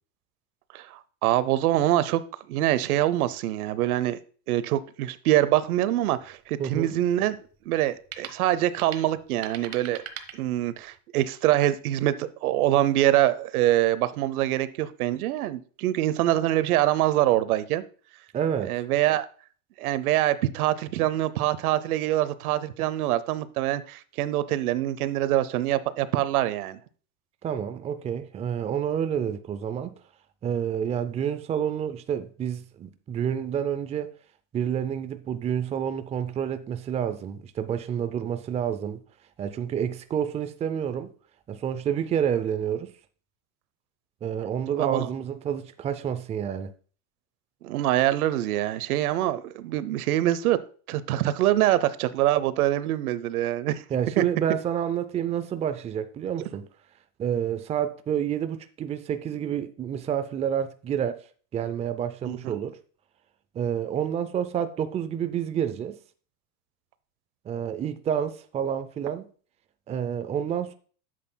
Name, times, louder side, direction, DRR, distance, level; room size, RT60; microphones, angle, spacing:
voice 1, 0.7-2.2 2.5-4.2 4.5-7.4 7.7-10.0 10.3-17.8 18.7-19.3 19.8-26.8 44.8-45.1 47.6-50.6 50.9-53.8 54.2-54.3 62.3-62.5, right 14 dB, 90° right, 0.8 m, -24 dB
sound 1, 5.6-11.0, right 9 dB, 35° right, 1.1 m, -44 dB
voice 2, 6.6-7.0 18.3-18.7 27.4-29.9 30.4-34.1 34.5-39.0 39.4-41.1 41.5-42.9 44.2-46.7 53.9-56.7 57.2-61.2 61.5-62.8 63.5-66.0 67.5-69.3 69.9-70.8, right 9 dB, 15° right, 0.4 m, -29 dB
11.0 x 7.6 x 2.2 m
supercardioid pair, 125°, 43 cm